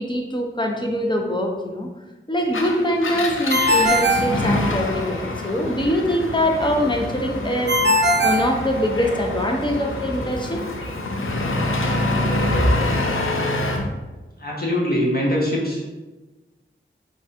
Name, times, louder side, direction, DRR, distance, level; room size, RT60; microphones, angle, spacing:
voice 1, 0.0-1.9 2.3-7.8 8.2-10.6, equal, 25° left, 2 dB, 0.8 m, -23 dB
Engine, 2.4-13.9, left 2 dB, 85° left, 0.5 m, -26 dB
Ringtone, 3.5-5.1 7.7-9.3, equal, 60° right, 0.7 m, -20 dB
voice 2, 14.4-16.0, equal, 50° left, -4 dB, 1.5 m, -23 dB
4.8 x 2.4 x 4.2 m, 1.2 s
wide cardioid pair, 45°, 20 cm